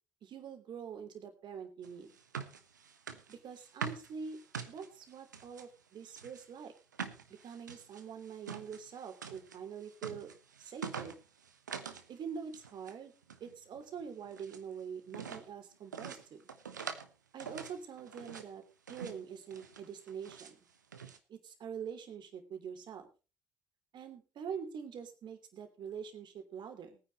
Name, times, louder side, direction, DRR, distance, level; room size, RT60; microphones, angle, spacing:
voice 1, 0.2-2.2 3.3-4.4 4.7-6.7 7.3-10.3 10.6-11.1 12.1-13.1 13.4-16.5 17.3-18.6 18.9-20.6 21.3-23.1 23.9-27.0, right 7 dB, 55° right, 7 dB, 3.1 m, -45 dB
sound 1, 1.8-5.7 6.1-12.1 12.4-12.9 13.2-14.7 15.1-15.5 15.9-17.1 17.4-18.5 18.9-19.2 19.5-20.5 20.9-21.2, right 6 dB, 85° right, 1.1 m, -45 dB
20.0 x 9.7 x 4.0 m, 0.32 s
figure-of-eight pair, 45°, 9 cm